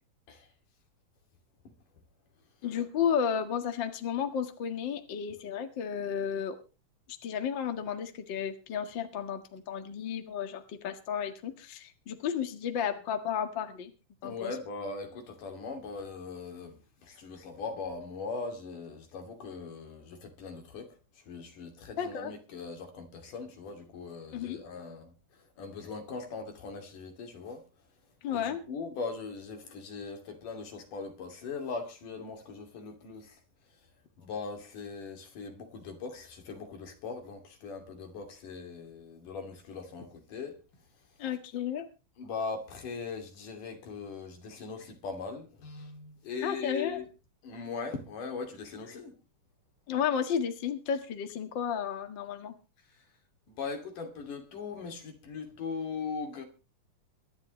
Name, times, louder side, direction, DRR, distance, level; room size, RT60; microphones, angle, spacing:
voice 1, 2.6-6.6 7.2-13.9 14.2-14.6 22.0-22.3 24.3-24.6 28.2-28.6 41.2-41.9 46.4-47.0 49.9-52.5, left 8 dB, 40° left, 2.1 m, -33 dB
voice 2, 14.2-20.9 21.3-25.1 25.6-27.6 28.3-33.4 34.2-40.6 42.2-47.1 47.4-49.1 53.5-56.5, left 4 dB, 75° left, 4.2 m, -40 dB
24.0 x 11.0 x 3.2 m
omnidirectional pair, 3.7 m